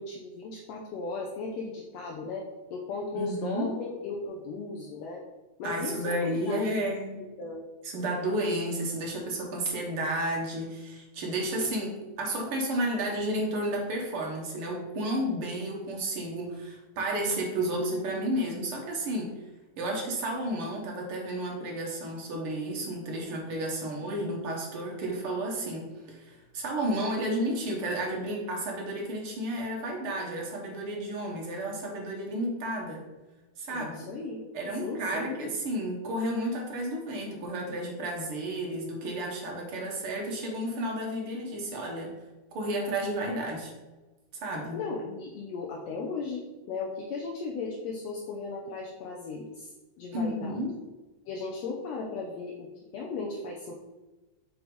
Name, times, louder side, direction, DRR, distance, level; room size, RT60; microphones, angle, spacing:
voice 1, 0.0-5.2 5.6-6.9 7.4-7.6 33.7-34.5 34.8-35.5 44.7-50.6 51.3-52.7 52.9-53.7, left 3 dB, 75° left, -1 dB, 1.7 m, -36 dB
voice 2, 3.1-3.7 5.6-7.2 7.8-19.3 19.8-33.0 33.6-33.9 34.5-42.1 42.5-43.7 44.3-44.8 50.1-50.7, right 1 dB, 55° right, -1 dB, 1.7 m, -32 dB
6.1 x 3.5 x 5.2 m, 1.2 s
omnidirectional pair, 3.5 m